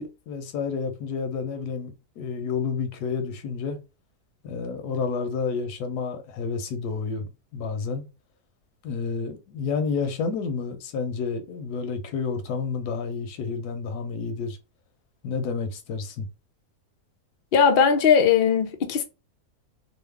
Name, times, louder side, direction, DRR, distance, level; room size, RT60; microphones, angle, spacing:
voice 1, 0.0-3.8 4.4-8.0 8.8-14.6 15.2-16.3, left 5 dB, 85° left, 1.2 m, -30 dB
voice 2, 17.5-19.0, left 7 dB, 65° left, 0.5 m, -19 dB
3.1 x 2.0 x 3.3 m
omnidirectional pair, 1.7 m